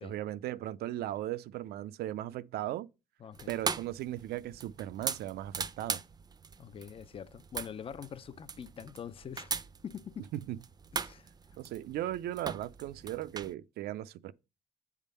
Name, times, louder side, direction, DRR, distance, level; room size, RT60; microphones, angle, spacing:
voice 1, 0.0-2.9 3.5-6.0 10.3-10.6 11.6-14.3, right 13 dB, 70° right, 0.5 m, -37 dB
voice 2, 3.2-3.5 6.6-9.5 9.8-10.3 10.9-11.3, left 8 dB, 35° left, 0.5 m, -44 dB
sound 1, 3.3-13.5, right 5 dB, 25° right, 0.5 m, -40 dB
8.2 x 3.6 x 6.6 m
cardioid pair, 110°, 17 cm